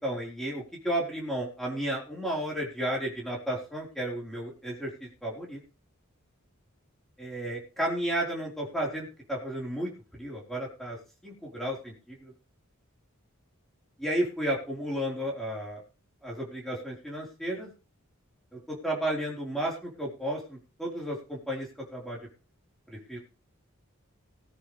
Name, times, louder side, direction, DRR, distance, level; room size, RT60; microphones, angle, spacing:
voice 1, 0.0-5.6 7.2-11.0 11.2-12.3 14.0-15.8 16.2-17.7 18.7-22.2 22.9-23.2, right 1 dB, ahead, -3 dB, 4.8 m, -33 dB
19.0 x 9.7 x 3.5 m, 0.33 s
head